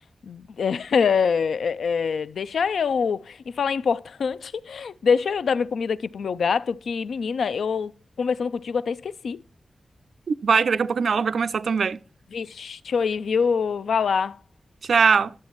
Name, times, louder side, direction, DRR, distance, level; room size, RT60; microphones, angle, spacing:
voice 1, 0.2-7.9 8.2-9.4 12.3-14.4, left 6 dB, 90° left, 0.4 m, -25 dB
voice 2, 10.3-12.0 14.8-15.3, right 5 dB, 80° right, 0.4 m, -21 dB
11.0 x 7.2 x 3.0 m
wide cardioid pair, 95°, 0 cm